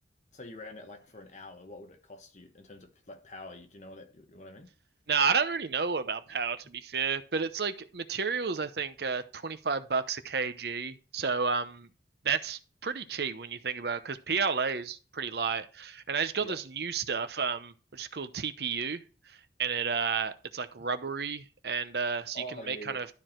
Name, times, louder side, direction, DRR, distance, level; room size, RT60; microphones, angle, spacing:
voice 1, 0.3-4.7 16.4-16.6 20.8-20.9 22.3-23.1, equal, 40° left, 1.3 m, -46 dB
voice 2, 5.1-11.9 12.2-19.0 19.6-23.1, right 5 dB, 65° right, 0.8 m, -31 dB
12.5 x 4.8 x 4.5 m
head